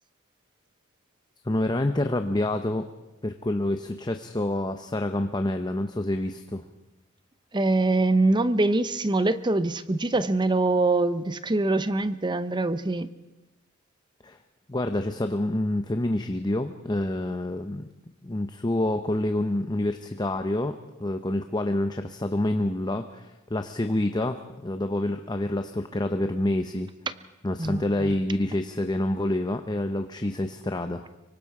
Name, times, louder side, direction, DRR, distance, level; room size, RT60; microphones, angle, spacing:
voice 1, 1.4-2.9 3.2-6.6 14.2-14.4 14.7-17.9 18.2-26.9 27.4-31.0, left 1 dB, 20° left, 7 dB, 0.7 m, -27 dB
voice 2, 7.5-13.1 27.6-28.1, right 2 dB, 20° right, 13 dB, 0.7 m, -24 dB
25.0 x 24.0 x 4.9 m, 1.0 s
head